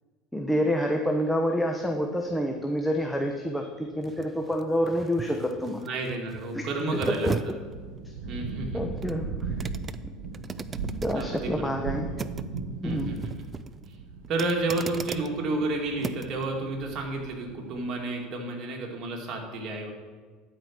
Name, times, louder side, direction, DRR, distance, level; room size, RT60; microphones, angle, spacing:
voice 1, 0.3-5.8 6.5-6.7 7.1-7.3 8.2-8.3 8.7-9.3 11.0-12.1 12.8-13.2, equal, 5° left, 2 dB, 0.9 m, -28 dB
sound 1, 1.8-16.5 16.9-17.0, right 5 dB, 30° right, 0.4 m, -40 dB
voice 2, 5.8-7.3 8.3-8.8 11.1-11.8 12.8-13.3 14.3-19.9, right 2 dB, 45° right, 0 dB, 2.4 m, -31 dB
sound 2, 7.3-17.9, right 4 dB, 90° right, 1.1 m, -38 dB
11.5 x 5.1 x 6.0 m, 1.5 s
hypercardioid pair, 85°, 0 cm